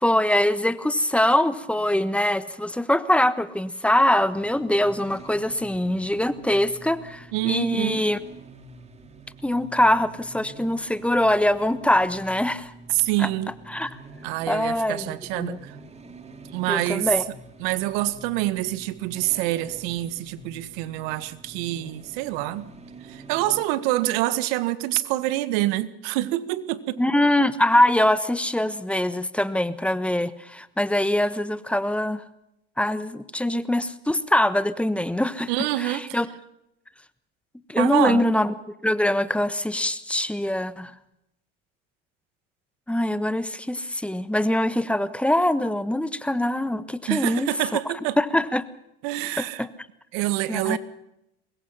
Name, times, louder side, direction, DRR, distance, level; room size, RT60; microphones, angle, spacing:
voice 1, 0.0-8.2 9.4-12.7 13.2-13.3 13.7-13.9 14.5-15.6 16.7-17.2 27.0-32.2 32.8-35.5 35.8-36.3 37.7-38.5 38.8-40.9 42.9-47.8 48.2-48.6 49.4-49.7 50.5-50.8, left 1 dB, 5° left, 1.3 m, -23 dB
sound 1, 4.3-23.6, right 3 dB, 20° right, 2.7 m, -46 dB
voice 2, 7.3-8.1 12.9-13.5 14.2-15.8 16.5-17.1 17.6-22.7 23.0-27.0 35.5-36.2 37.8-38.2 47.1-48.2 49.0-49.7 50.1-50.8, right 16 dB, 75° right, 1.8 m, -26 dB
24.0 x 21.0 x 5.8 m
supercardioid pair, 105°, 30 cm